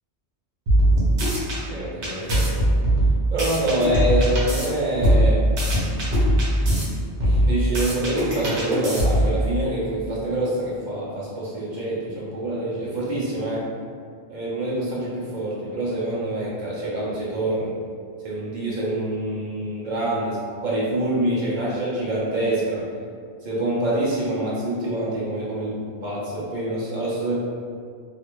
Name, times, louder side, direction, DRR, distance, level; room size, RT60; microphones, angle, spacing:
sound 1, 0.7-1.6 2.0-4.7 5.0-6.8 7.2-9.3, equal, 80° right, 1.2 m, -20 dB
voice 1, 1.7-2.6 3.3-5.5 7.2-13.7 14.3-17.7 18.2-20.4 20.6-22.8 23.4-27.4, right 1 dB, 45° right, -8 dB, 1.0 m, -26 dB
3.1 x 2.6 x 3.0 m, 2.1 s
omnidirectional pair, 1.1 m